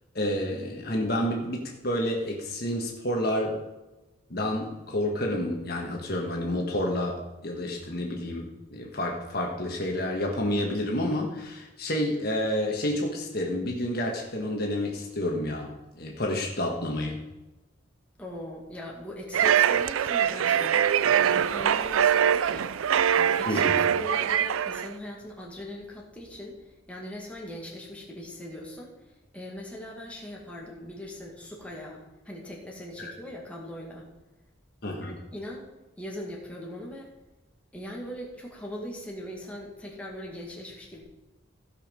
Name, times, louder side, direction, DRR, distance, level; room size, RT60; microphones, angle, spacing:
voice 1, 0.1-3.6 4.3-17.2 23.5-23.8 34.8-35.2, left 1 dB, 50° left, 0 dB, 1.4 m, -29 dB
voice 2, 18.2-22.7 23.2-34.1 35.0-35.7 36.0-37.1 37.7-41.0, equal, 5° left, -3 dB, 2.0 m, -40 dB
sound 1, 19.3-24.9, right 9 dB, 85° right, 0.4 m, -23 dB
15.5 x 5.5 x 5.2 m, 1.1 s
head